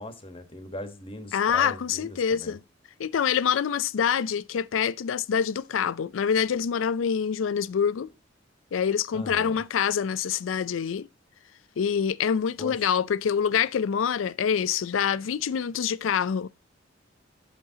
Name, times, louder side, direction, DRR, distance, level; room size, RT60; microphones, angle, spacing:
voice 1, 0.0-2.6 9.1-9.6 12.6-12.8, left 1 dB, 30° left, 1.2 m, -39 dB
voice 2, 1.3-2.6 3.0-8.1 8.7-11.1 11.8-16.5, left 7 dB, 90° left, 0.4 m, -26 dB
8.1 x 6.2 x 2.7 m
head